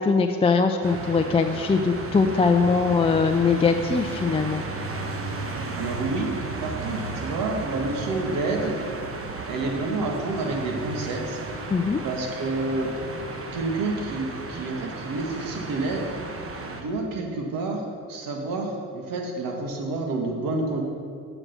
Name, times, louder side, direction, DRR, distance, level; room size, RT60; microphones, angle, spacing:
voice 1, 0.0-4.6 11.7-12.0, left 4 dB, 15° left, 5 dB, 0.4 m, -21 dB
sound 1, 0.8-16.8, right 3 dB, 40° right, 1.0 m, -34 dB
voice 2, 5.7-6.3 6.6-8.8 9.5-11.4 12.0-12.9 13.5-16.1 16.7-20.8, right 3 dB, 70° right, 1 dB, 1.5 m, -29 dB
7.5 x 5.0 x 6.5 m, 2.3 s
supercardioid pair, 65°, 35 cm